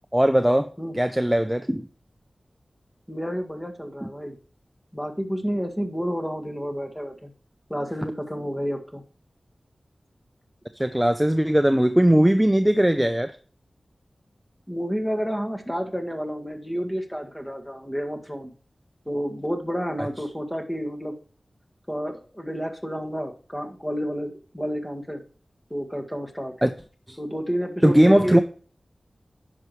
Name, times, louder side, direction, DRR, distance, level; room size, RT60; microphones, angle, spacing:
voice 1, 0.1-0.7 0.9-1.9 4.0-4.1 10.8-13.3 26.6-26.7 27.1-27.2 27.8-28.4, right 1 dB, 10° right, 9 dB, 0.5 m, -19 dB
voice 2, 3.1-4.4 4.9-7.3 7.7-9.0 14.7-18.5 19.1-21.1 21.9-25.2 25.7-26.5 27.2-28.4, equal, 10° left, 4 dB, 1.7 m, -30 dB
10.5 x 6.0 x 3.1 m, 0.41 s
wide cardioid pair, 70°, 0 cm